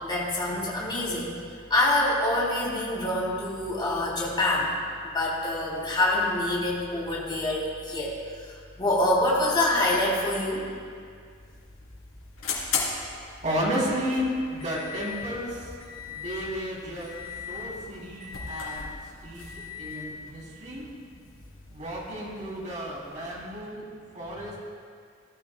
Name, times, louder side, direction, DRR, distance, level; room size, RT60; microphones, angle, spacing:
voice 1, 0.0-1.4 1.7-4.7 5.0-8.1 8.8-10.7, left 1 dB, 20° left, -5 dB, 3.2 m, -26 dB
sound 1, 11.2-23.7, left 5 dB, 75° left, 3.1 m, -38 dB
voice 2, 13.4-15.7 16.1-17.1 17.5-18.9 19.2-20.8 21.7-23.8 24.1-24.6, equal, 35° right, -5 dB, 3.2 m, -32 dB
19.5 x 12.5 x 2.3 m, 2.1 s
head